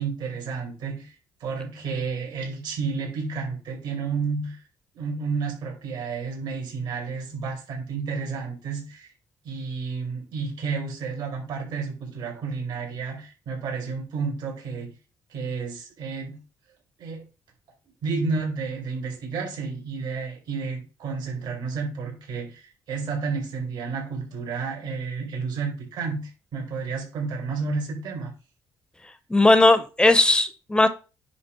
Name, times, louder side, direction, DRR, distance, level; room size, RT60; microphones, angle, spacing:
voice 1, 0.0-4.6 4.9-9.1 9.4-14.9 15.3-16.4 17.0-17.3 18.0-28.3, right 4 dB, 70° right, 0 dB, 4.3 m, -31 dB
voice 2, 29.3-30.9, left 2 dB, 10° left, 13 dB, 0.6 m, -17 dB
9.8 x 3.4 x 5.6 m, 0.32 s
cardioid pair, 140°, 8 cm